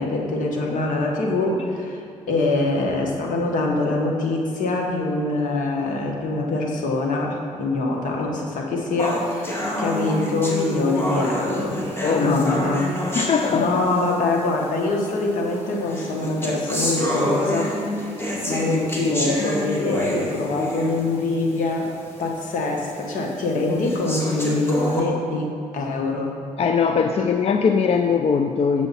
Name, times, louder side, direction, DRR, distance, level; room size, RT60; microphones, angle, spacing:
voice 1, 0.0-11.8 12.1-12.9 13.5-17.9 18.5-21.9 22.2-26.3, left 2 dB, 80° left, 1 dB, 1.4 m, -24 dB
sound 1, 9.0-14.1 15.0-15.1 15.9-21.1 21.6-21.7 22.2-22.3 23.0-23.1 23.8-25.0, equal, 15° left, 1.9 m, -27 dB
voice 2, 12.0-12.8 13.2-13.8 26.6-28.9, left 6 dB, 50° left, 6 dB, 0.4 m, -21 dB
8.1 x 7.0 x 4.2 m, 2.6 s
cardioid pair, 70°, 13 cm